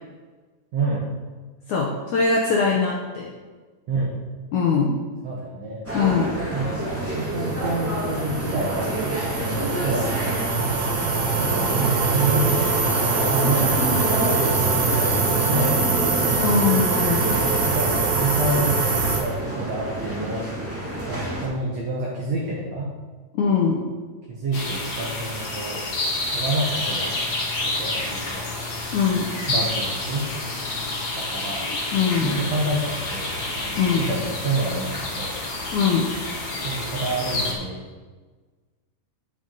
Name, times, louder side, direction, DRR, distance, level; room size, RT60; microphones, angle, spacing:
voice 1, 0.7-1.0 3.9-4.1 5.2-5.9 6.5-9.0 9.3-10.5 11.4-14.3 14.9-16.4 17.6-18.9 19.2-20.5 21.1-22.9 24.3-25.9 26.3-27.2 27.6-28.5 29.5-30.6 31.1-31.8 32.2-35.4 36.6-37.8, right 2 dB, 60° right, -4 dB, 1.8 m, -28 dB
voice 2, 1.7-3.3 4.5-5.0 5.9-6.4 16.4-17.4 23.3-23.8 28.9-29.3 31.9-32.3 33.8-34.1 35.7-36.1, left 5 dB, 75° left, -1 dB, 1.8 m, -22 dB
sound 1, 5.8-21.5, right 1 dB, 10° right, 0.7 m, -29 dB
sound 2, 7.0-19.2, right 4 dB, 90° right, 4.7 m, -23 dB
sound 3, 24.5-37.5, left 2 dB, 60° left, 1.0 m, -29 dB
9.1 x 9.0 x 4.0 m, 1.4 s
omnidirectional pair, 4.5 m